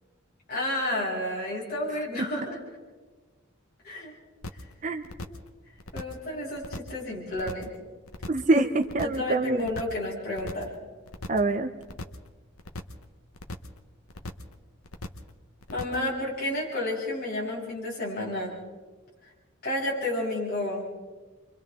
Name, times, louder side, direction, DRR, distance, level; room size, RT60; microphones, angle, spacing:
voice 1, 0.5-2.6 3.8-4.1 5.3-5.4 5.9-7.7 9.0-10.7 15.7-18.6 19.2-19.3 19.6-20.9, left 1 dB, 45° left, -5 dB, 7.1 m, -31 dB
sound 1, 4.4-4.7 5.0-5.5 5.8-6.2 6.5-7.0 7.3-7.8 8.1-8.5 8.8-9.3 9.6-10.0 10.3-10.8 11.1-11.5 11.8-12.3 12.6-13.0 13.3-13.8 14.1-14.5 14.8-15.3 15.6-16.1, left 1 dB, 90° left, 1.3 m, -39 dB
voice 2, 8.3-9.7 11.3-11.7, right 2 dB, 35° right, 8 dB, 0.7 m, -25 dB
30.0 x 24.5 x 3.7 m, 1.3 s
head